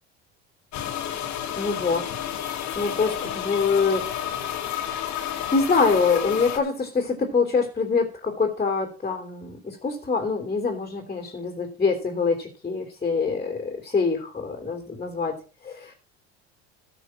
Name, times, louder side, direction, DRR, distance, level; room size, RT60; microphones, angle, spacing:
sound 1, 0.7-6.6, left 10 dB, 60° left, 2.3 m, -31 dB
voice 1, 1.6-2.1 2.7-4.1 4.8-15.9, left 4 dB, 20° left, 2 dB, 3.2 m, -25 dB
13.0 x 5.9 x 6.0 m, 0.36 s
supercardioid pair, 95°, 32 cm